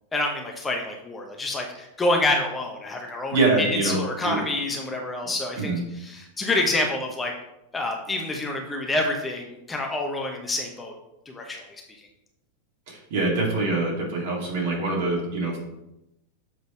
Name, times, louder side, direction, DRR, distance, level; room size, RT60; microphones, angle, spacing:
voice 1, 0.1-7.3 7.7-10.9 11.3-11.7, left 2 dB, 15° left, 1 dB, 1.0 m, -27 dB
voice 2, 3.3-4.4 5.6-5.8 12.9-15.6, right 3 dB, 50° right, -3 dB, 2.6 m, -24 dB
7.2 x 4.0 x 4.6 m, 0.87 s
figure-of-eight pair, 90°, 0 cm